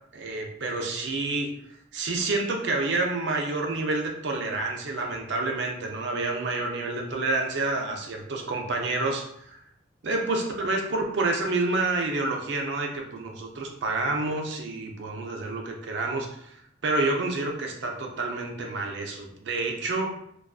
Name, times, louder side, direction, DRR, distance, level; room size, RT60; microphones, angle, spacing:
voice 1, 0.1-1.5 1.9-9.6 10.0-20.1, right 2 dB, 65° right, 2 dB, 0.4 m, -28 dB
2.4 x 2.3 x 2.3 m, 0.71 s
head